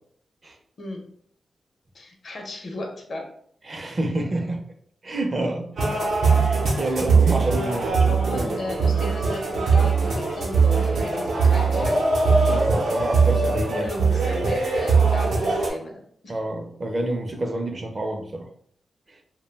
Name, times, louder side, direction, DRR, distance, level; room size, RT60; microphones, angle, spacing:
voice 1, 1.9-3.3 8.0-12.1 13.7-16.4, left 1 dB, 60° left, 1 dB, 0.6 m, -35 dB
voice 2, 3.7-4.6 5.0-5.7 6.4-8.6 12.5-13.9 16.3-18.5, right 2 dB, 40° right, 3 dB, 0.5 m, -28 dB
sound 1, 5.8-15.7, right 4 dB, 85° right, 0.7 m, -21 dB
2.3 x 2.1 x 3.2 m, 0.63 s
cardioid pair, 80°, 0 cm